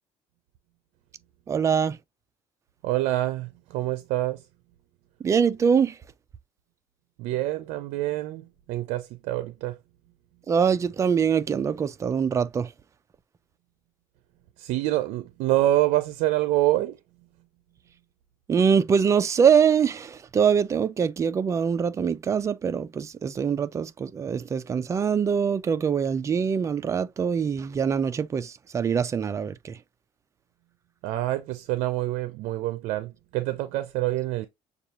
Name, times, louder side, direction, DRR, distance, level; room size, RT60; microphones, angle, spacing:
voice 1, 1.5-2.0 5.2-6.0 10.5-12.7 18.5-29.8, right 7 dB, 25° right, 0.4 m, -23 dB
voice 2, 2.8-4.4 7.2-8.4 8.7-9.8 14.6-17.0 31.0-34.5, right 15 dB, 80° right, 0.5 m, -26 dB
6.6 x 2.4 x 2.9 m
cardioid pair, 130°, 11 cm